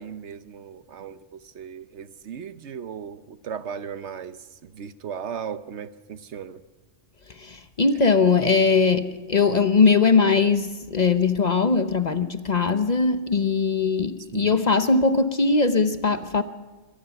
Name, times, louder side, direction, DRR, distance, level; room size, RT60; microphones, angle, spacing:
voice 1, 0.0-4.4 4.6-6.6 14.3-14.6, right 7 dB, 70° right, 12 dB, 1.1 m, -36 dB
voice 2, 7.4-16.4, left 4 dB, 40° left, 9 dB, 0.9 m, -20 dB
24.5 x 19.0 x 5.9 m, 1.2 s
omnidirectional pair, 1.2 m